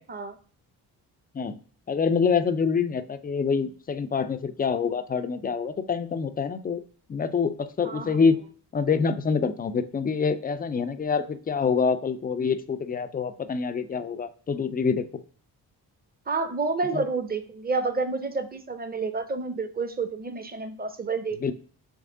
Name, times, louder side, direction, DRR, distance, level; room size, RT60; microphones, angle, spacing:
voice 1, 1.9-6.8 7.1-8.4 8.7-15.0 16.9-17.0 21.4-21.5, left 5 dB, 20° left, 11 dB, 0.4 m, -26 dB
voice 2, 7.8-8.2 16.3-21.5, right 4 dB, 20° right, 9 dB, 0.7 m, -29 dB
3.5 x 3.2 x 3.7 m, 0.42 s
hypercardioid pair, 45°, 47 cm